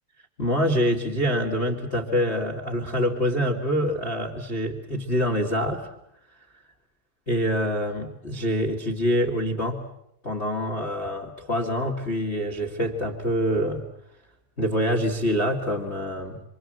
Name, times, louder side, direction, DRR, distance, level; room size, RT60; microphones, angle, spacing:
voice 1, 0.4-5.9 7.3-9.8 10.2-13.8 14.6-16.4, equal, 25° left, 1 dB, 1.4 m, -25 dB
27.0 x 26.5 x 7.7 m, 0.80 s
omnidirectional pair, 5.8 m